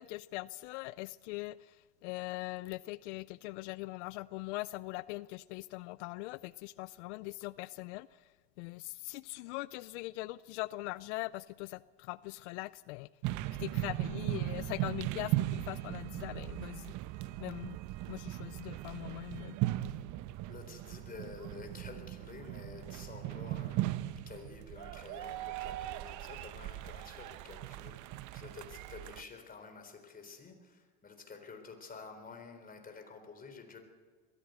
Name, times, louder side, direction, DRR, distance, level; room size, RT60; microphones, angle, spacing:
voice 1, 0.0-8.3 8.6-13.1 13.6-16.9 17.4-17.8 18.1-19.6, left 20 dB, 85° left, 18 dB, 0.5 m, -41 dB
sound 1, 13.2-29.2, right 16 dB, 60° right, 0.9 m, -38 dB
voice 2, 20.5-33.8, left 4 dB, 25° left, 5 dB, 4.0 m, -50 dB
21.5 x 15.0 x 8.1 m, 1.5 s
supercardioid pair, 100°, 34 cm